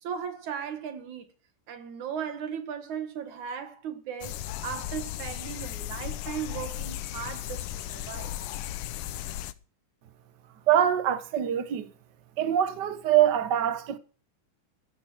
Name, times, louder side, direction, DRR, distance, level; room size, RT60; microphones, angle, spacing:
voice 1, 0.0-1.3 1.7-8.3, right 8 dB, 65° right, 3.2 m, -37 dB
sound 1, 4.2-9.5, left 13 dB, 80° left, 2.3 m, -36 dB
voice 2, 10.7-11.9 12.4-14.0, right 11 dB, 50° right, 1.3 m, -24 dB
15.5 x 13.5 x 4.6 m
omnidirectional pair, 3.7 m